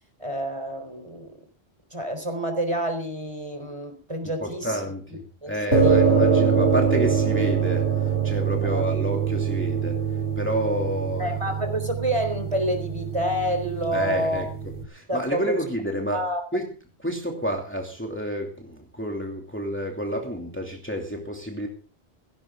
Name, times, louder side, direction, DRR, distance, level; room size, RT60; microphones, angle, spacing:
voice 1, 0.2-1.3 1.9-4.8 5.4-6.0 8.7-8.8 11.2-14.4 15.1-15.5 16.1-16.4, right 1 dB, 30° right, 6 dB, 4.2 m, -28 dB
voice 2, 4.4-10.0 10.4-11.4 13.9-14.5 14.9-16.2 16.5-16.7 17.0-21.7, equal, 10° left, 1 dB, 2.8 m, -29 dB
sound 1, 5.7-14.8, right 6 dB, 85° right, 3.1 m, -24 dB
17.0 x 16.5 x 3.8 m, 0.36 s
omnidirectional pair, 1.1 m